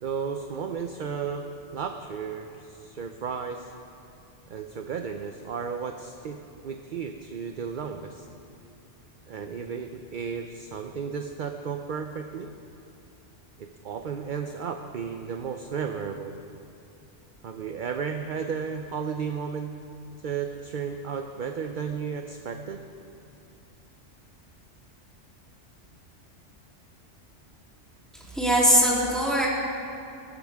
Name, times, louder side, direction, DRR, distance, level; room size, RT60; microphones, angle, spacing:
voice 1, 0.0-1.5 1.7-3.7 4.5-6.4 6.6-8.3 9.3-12.5 13.6-16.4 17.4-19.7 20.2-22.8, right 6 dB, 50° right, 5 dB, 0.7 m, -33 dB
voice 2, 28.3-29.5, equal, ahead, -6 dB, 3.2 m, -21 dB
20.5 x 13.5 x 3.6 m, 2.6 s
omnidirectional pair, 1.2 m